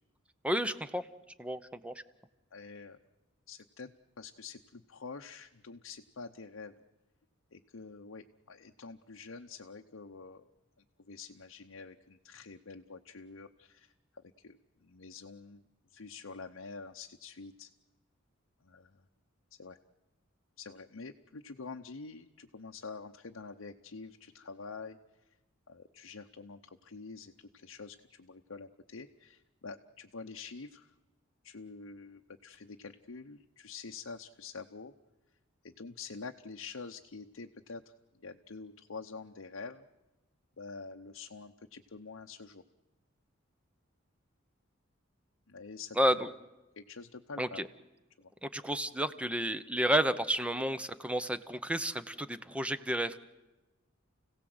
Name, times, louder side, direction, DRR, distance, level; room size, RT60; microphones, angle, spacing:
voice 1, 0.4-1.1 1.4-1.9 46.0-46.3 47.4-47.7 48.4-53.2, equal, 5° right, 12 dB, 0.7 m, -31 dB
voice 2, 2.5-3.0 3.5-6.8 7.5-10.5 11.0-13.9 14.2-15.6 15.9-17.7 18.6-19.1 19.6-19.8 20.6-25.0 25.7-30.9 31.4-34.9 35.6-37.9 38.2-39.9 40.6-42.6 45.5-46.3 46.8-47.6 48.2-48.3, left 4 dB, 80° left, 3 dB, 0.9 m, -47 dB
30.0 x 17.0 x 7.9 m, 1.1 s
head